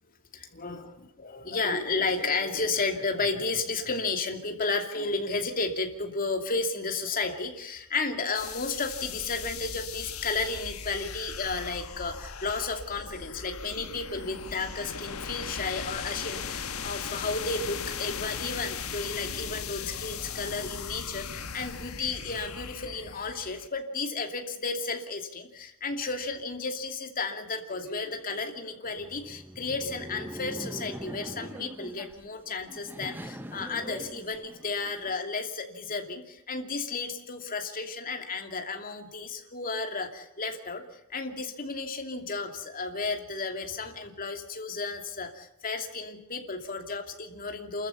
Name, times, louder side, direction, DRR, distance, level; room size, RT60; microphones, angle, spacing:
voice 1, 0.3-0.9 1.2-47.9, left 3 dB, 40° left, 4 dB, 2.7 m, -33 dB
sound 1, 8.3-23.7, left 6 dB, 75° left, 1.4 m, -38 dB
Laughter, 28.9-35.1, equal, 10° right, 1.0 m, -42 dB
29.0 x 14.0 x 7.1 m, 0.94 s
head